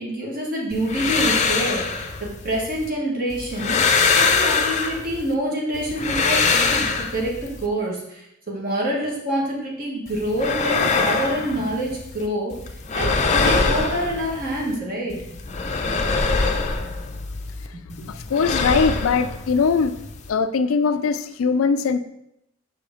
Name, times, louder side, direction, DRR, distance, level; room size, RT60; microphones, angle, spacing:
voice 1, 0.0-3.8 4.1-12.5 12.9-15.2 17.7-18.1, right 1 dB, 45° right, -3 dB, 1.8 m, -26 dB
sound 1, 0.7-2.9 3.3-5.3 5.7-7.7 10.1-12.3 12.5-14.8 15.1-17.7 17.9-20.3, left 4 dB, 35° left, 0.5 m, -23 dB
voice 2, 18.0-19.9 20.3-22.0, left 5 dB, 80° left, 12 dB, 0.4 m, -21 dB
5.7 x 5.0 x 3.8 m, 0.80 s
head